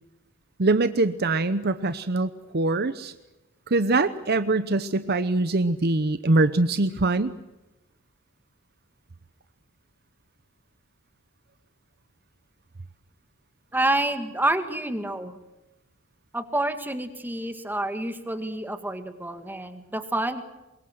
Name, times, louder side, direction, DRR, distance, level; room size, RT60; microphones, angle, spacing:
voice 1, 0.6-3.1 3.7-7.4, right 2 dB, 45° right, 13 dB, 0.9 m, -23 dB
voice 2, 13.7-15.4 16.3-20.4, right 1 dB, 10° right, 9 dB, 1.9 m, -28 dB
25.0 x 22.0 x 7.8 m, 1.0 s
head